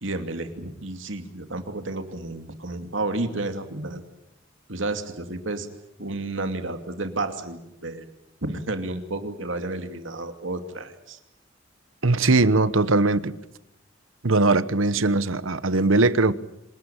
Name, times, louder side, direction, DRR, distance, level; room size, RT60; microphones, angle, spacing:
voice 1, 0.0-4.0 4.7-5.7 6.0-8.1 8.4-11.2 14.9-15.0, right 2 dB, 70° right, 2.7 m, -31 dB
voice 2, 12.0-13.3 14.2-16.3, right 3 dB, 85° right, 1.1 m, -20 dB
26.5 x 18.0 x 8.9 m
head